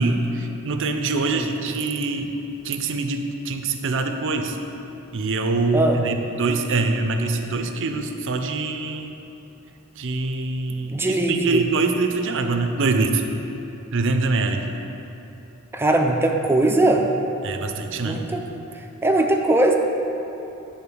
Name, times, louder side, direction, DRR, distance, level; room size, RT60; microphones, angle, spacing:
voice 1, 0.0-2.3 2.6-4.6 5.1-9.1 10.0-13.2 13.9-14.7 17.4-18.2, right 3 dB, 60° right, 5 dB, 0.6 m, -24 dB
voice 2, 1.2-1.8 5.7-6.0 10.9-11.6 15.7-17.0 18.0-18.4 19.0-19.7, right 1 dB, 10° right, 2 dB, 0.4 m, -20 dB
8.6 x 3.8 x 7.0 m, 3.0 s
head